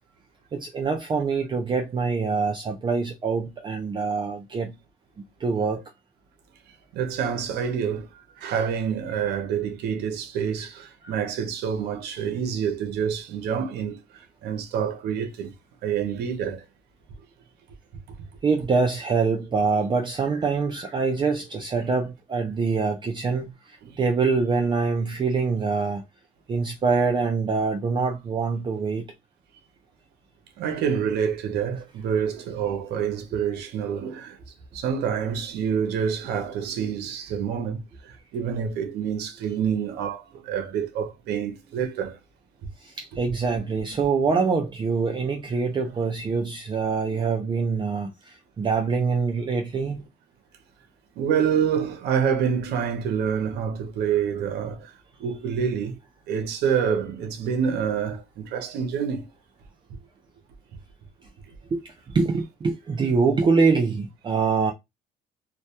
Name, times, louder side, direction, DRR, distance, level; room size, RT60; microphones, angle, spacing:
voice 1, 0.5-4.7 5.4-5.8 11.0-11.1 18.4-26.0 26.5-29.0 42.8-50.1 61.7-61.8 62.1-64.7, right 4 dB, 30° right, 0.4 m, -24 dB
voice 2, 6.9-15.5 15.8-16.6 23.8-24.0 30.6-34.4 34.7-42.2 51.2-54.9 55.2-56.0 56.3-59.3, right 7 dB, 80° right, 0.6 m, -27 dB
2.2 x 2.1 x 2.7 m
cardioid pair, 110°, 17 cm